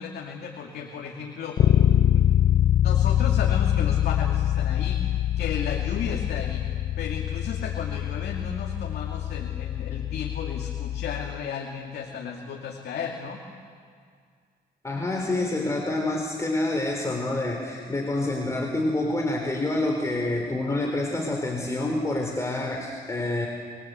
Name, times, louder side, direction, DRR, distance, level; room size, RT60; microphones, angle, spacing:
voice 1, 0.0-1.6 2.0-2.3 2.8-6.6 7.0-13.4, left 6 dB, 65° left, 0 dB, 2.6 m, -34 dB
Bass guitar, 1.6-11.4, left 11 dB, 50° left, 0.8 m, -24 dB
voice 2, 14.8-23.5, left 2 dB, 15° left, 0 dB, 3.8 m, -27 dB
26.0 x 23.5 x 8.2 m, 2.1 s
cardioid pair, 115°, 18 cm